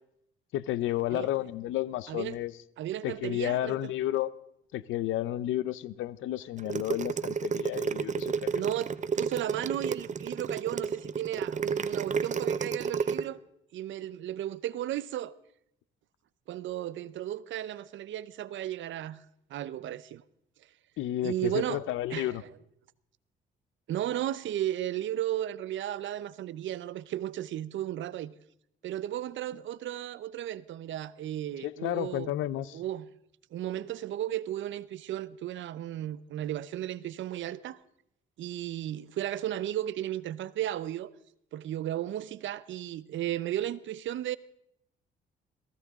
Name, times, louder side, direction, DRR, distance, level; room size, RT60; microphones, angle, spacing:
voice 1, 0.5-2.5 3.0-4.3 4.7-8.6 21.0-22.4 31.6-32.8, left 13 dB, 90° left, 0.8 m, -32 dB
voice 2, 2.8-3.8 8.5-13.4 13.7-15.3 16.5-19.2 19.5-20.2 21.2-21.8 22.1-22.3 23.9-28.3 28.8-32.3 32.7-33.1 33.5-37.8 38.4-41.1 41.5-44.4, right 12 dB, 75° right, 0.8 m, -34 dB
sound 1, 6.6-13.2, right 6 dB, 40° right, 0.9 m, -31 dB
22.5 x 16.5 x 3.7 m
cardioid pair, 90°, 20 cm